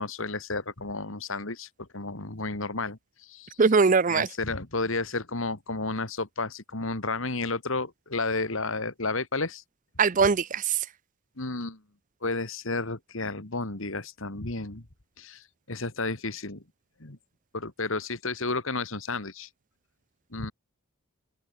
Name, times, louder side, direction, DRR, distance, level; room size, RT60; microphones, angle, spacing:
voice 1, 0.0-3.7 4.1-9.6 11.4-11.8 12.2-14.8 15.2-16.6 17.0-17.2 17.5-19.5 20.3-20.5, left 3 dB, 60° left, 2.3 m, -32 dB
voice 2, 3.6-4.3 10.0-10.8, right 4 dB, 35° right, 0.5 m, -21 dB
head